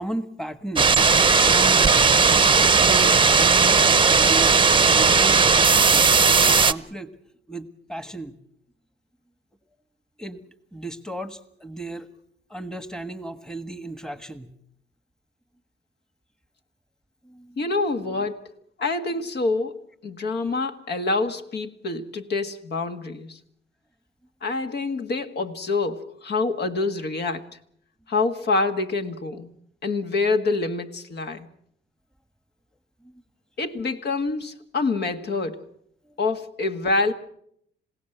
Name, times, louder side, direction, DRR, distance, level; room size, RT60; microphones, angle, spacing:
voice 1, 0.0-1.9 2.6-7.1 7.5-8.3 10.2-10.4 10.7-12.1 12.5-14.5 17.2-17.7 33.0-33.2 36.0-36.2, right 1 dB, 5° left, 1.4 m, -35 dB
sound 1, 0.8-6.7, right 5 dB, 25° right, 0.8 m, -17 dB
voice 2, 17.6-18.5 18.8-23.4 24.4-27.5 28.1-29.5 29.8-31.5 33.6-35.7 36.2-37.1, left 3 dB, 55° left, 1.8 m, -26 dB
27.0 x 17.0 x 8.0 m
cardioid pair, 90°, 20 cm